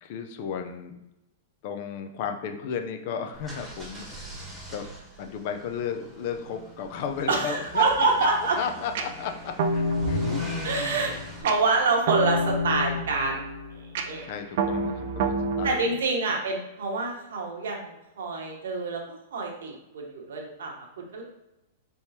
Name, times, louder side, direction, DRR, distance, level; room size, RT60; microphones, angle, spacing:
voice 1, 0.0-0.9 1.6-4.4 4.7-4.9 5.2-7.8 8.2-8.3 8.6-10.6 14.3-15.9, left 7 dB, 55° left, 6 dB, 0.5 m, -34 dB
sound 1, 3.3-11.4, right 1 dB, 5° right, 1.2 m, -40 dB
voice 2, 7.3-8.6 10.6-11.1 11.4-14.2 15.6-21.2, right 3 dB, 80° right, 1 dB, 1.1 m, -27 dB
sound 2, 9.0-15.7, right 1 dB, 60° right, 0.5 m, -29 dB
4.5 x 3.5 x 2.8 m, 0.92 s
hypercardioid pair, 135°, 0 cm